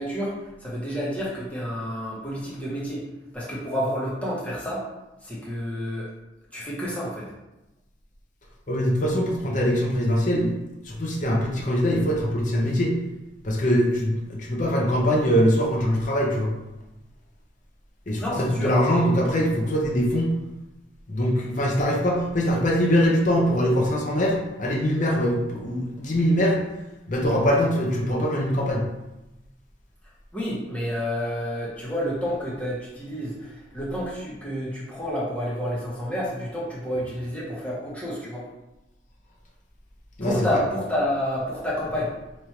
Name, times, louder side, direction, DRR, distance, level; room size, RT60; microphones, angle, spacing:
voice 1, 0.0-3.0 3.3-4.9 5.2-6.1 6.5-7.3 18.2-19.1 30.3-38.5 40.2-42.2, equal, 10° left, -7 dB, 1.0 m, -29 dB
voice 2, 8.7-10.5 10.8-13.0 13.4-16.5 18.1-20.4 21.1-26.6 27.1-28.8 40.2-40.6, equal, 40° left, -1 dB, 0.7 m, -22 dB
3.1 x 2.6 x 4.4 m, 0.97 s
head